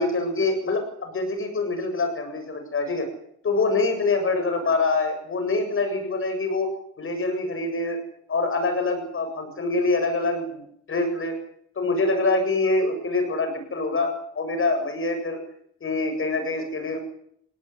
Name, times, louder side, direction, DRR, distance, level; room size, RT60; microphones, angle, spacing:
voice 1, 0.0-3.1 3.4-6.7 7.0-8.0 8.3-10.6 10.9-11.3 11.8-14.1 14.3-15.4 15.8-17.0, left 3 dB, 45° left, 6 dB, 7.8 m, -25 dB
19.0 x 18.5 x 9.8 m, 0.69 s
cardioid pair, 90°, 30 cm